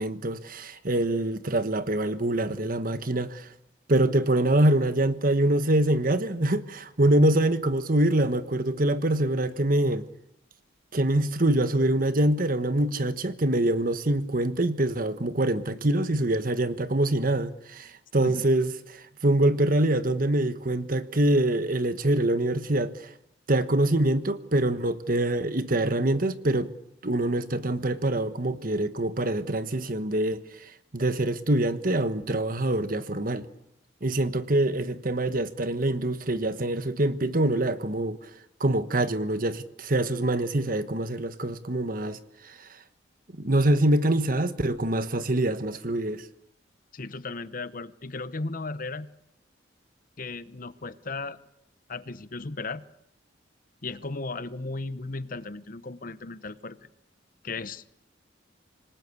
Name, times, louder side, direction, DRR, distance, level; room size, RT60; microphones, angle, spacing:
voice 1, 0.0-3.5 3.9-10.0 10.9-22.9 23.5-26.7 27.0-30.4 30.9-33.5 34.0-38.2 38.6-42.2 42.5-42.6 43.3-46.2, right 1 dB, 45° right, 1.3 m, -25 dB
voice 2, 46.9-49.1 50.2-51.4 51.9-52.8 53.8-56.8 57.4-57.9, left 3 dB, 45° left, 0.9 m, -35 dB
26.0 x 20.0 x 8.3 m
head